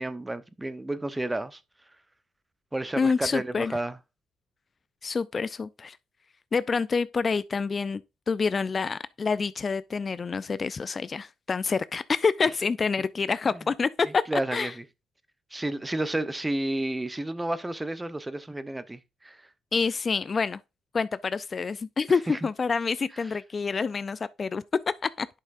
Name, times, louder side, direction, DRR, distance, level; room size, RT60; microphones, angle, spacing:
voice 1, 0.0-1.6 2.7-4.0 14.0-14.8 15.5-19.4 22.3-22.4, right 1 dB, 15° right, 0.7 m, -31 dB
voice 2, 3.0-3.7 5.0-6.0 6.5-14.7 19.7-20.6 20.9-25.3, left 5 dB, 35° left, 0.4 m, -27 dB
10.5 x 5.6 x 2.5 m
cardioid pair, 90°, 0 cm